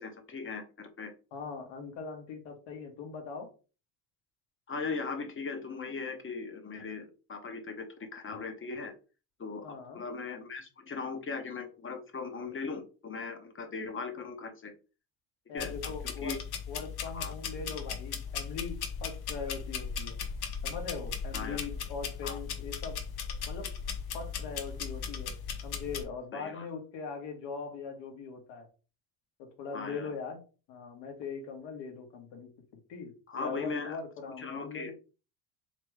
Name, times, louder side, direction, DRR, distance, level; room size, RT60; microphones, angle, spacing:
voice 1, 0.0-1.1 4.7-8.9 9.4-9.7 9.9-14.7 15.5-16.4 17.1-17.3 21.3-21.6 22.2-22.4 26.3-26.7 29.7-30.1 33.3-34.0 34.4-34.9, left 4 dB, 25° left, 6 dB, 0.9 m, -39 dB
voice 2, 1.3-3.5 9.6-10.0 15.5-16.4 16.7-20.2 20.6-23.0 23.5-23.7 24.1-25.3 25.6-28.7 29.4-30.4 30.7-32.5 32.9-34.9, left 5 dB, 65° left, 4 dB, 1.5 m, -41 dB
sound 1, 15.6-26.0, left 6 dB, 50° left, 1.0 m, -37 dB
3.4 x 3.3 x 3.2 m, 0.34 s
hypercardioid pair, 80°, 47 cm